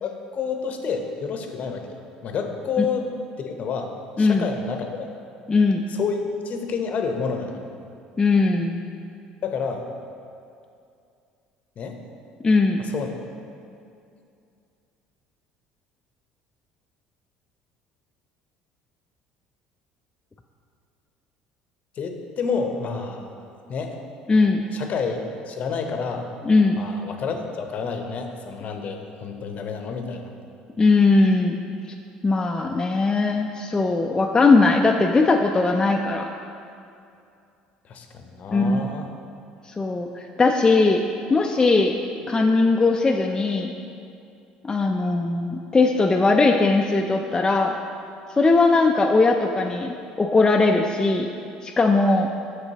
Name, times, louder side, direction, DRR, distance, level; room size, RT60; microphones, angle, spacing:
voice 1, 0.0-3.1 3.4-5.1 5.9-6.2 6.4-7.7 9.4-9.8 11.8-12.0 12.8-13.1 22.0-23.3 23.7-24.0 24.7-25.2 25.5-26.3 26.8-30.3 37.8-39.1, left 5 dB, 50° left, 5 dB, 0.7 m, -29 dB
voice 2, 5.5-5.9 8.2-8.8 12.4-12.8 24.3-24.6 26.4-26.8 30.8-31.6 32.2-36.3 38.5-38.9 39.6-41.0 41.3-42.0 42.3-43.7 44.6-47.7 48.3-51.3 51.6-52.3, left 3 dB, 20° left, 2 dB, 0.4 m, -19 dB
7.8 x 6.0 x 2.8 m, 2.5 s
hypercardioid pair, 70°, 3 cm